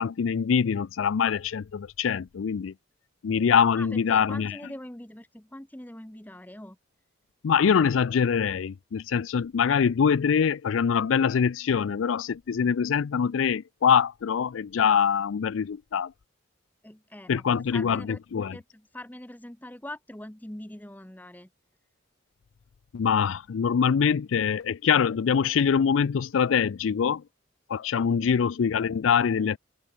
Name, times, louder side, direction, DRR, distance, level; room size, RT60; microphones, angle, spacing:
voice 1, 0.0-2.7 3.2-4.6 7.4-16.1 17.3-18.6 22.9-27.2 27.7-29.6, left 7 dB, 85° left, 0.4 m, -24 dB
voice 2, 3.7-6.8 16.8-18.2 18.5-21.5 28.0-28.3, left 1 dB, 10° left, 0.9 m, -43 dB
head